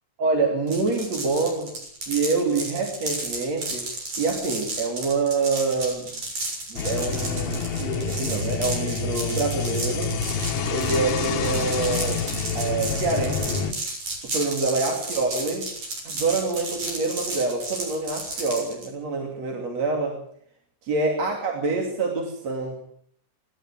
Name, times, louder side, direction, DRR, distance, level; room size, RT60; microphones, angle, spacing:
voice 1, 0.2-1.7 2.0-3.9 4.2-6.1 6.7-10.1 10.7-12.2 12.5-13.7 14.2-15.7 16.0-20.2 20.8-22.9, right 3 dB, 65° right, 1 dB, 4.0 m, -26 dB
sound 1, 0.7-18.9, right 2 dB, 80° right, 8.3 m, -33 dB
sound 2, 6.8-13.7, left 5 dB, 90° left, 3.0 m, -28 dB
27.5 x 12.5 x 7.6 m, 0.62 s
omnidirectional pair, 3.3 m